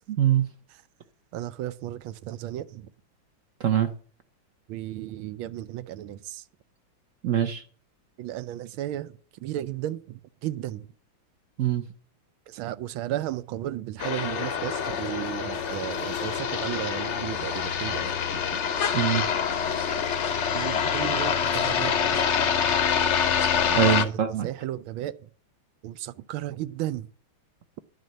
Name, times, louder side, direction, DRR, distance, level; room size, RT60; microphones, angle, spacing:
voice 1, 1.3-2.9 4.7-6.4 8.2-10.9 12.5-18.4 19.7-19.9 20.5-22.0 23.9-25.2 25.8-27.1, right 13 dB, 90° right, 1.5 m, -34 dB
voice 2, 7.2-7.6 11.6-11.8 18.9-19.2 23.7-24.5, right 10 dB, 65° right, 0.8 m, -23 dB
sound 1, 14.0-24.0, left 7 dB, 55° left, 0.7 m, -26 dB
11.0 x 5.2 x 7.7 m
omnidirectional pair, 2.2 m